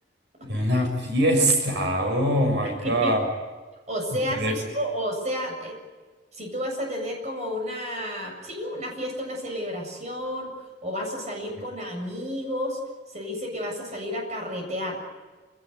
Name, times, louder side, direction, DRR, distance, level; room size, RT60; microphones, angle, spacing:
voice 1, 0.4-3.3 4.1-4.6, right 1 dB, 75° right, 3 dB, 6.8 m, -23 dB
voice 2, 2.7-3.1 3.9-4.4 4.7-5.8 6.3-10.5 10.8-12.8 13.1-15.0, equal, 40° right, 2 dB, 7.5 m, -31 dB
29.0 x 18.0 x 9.6 m, 1.3 s
head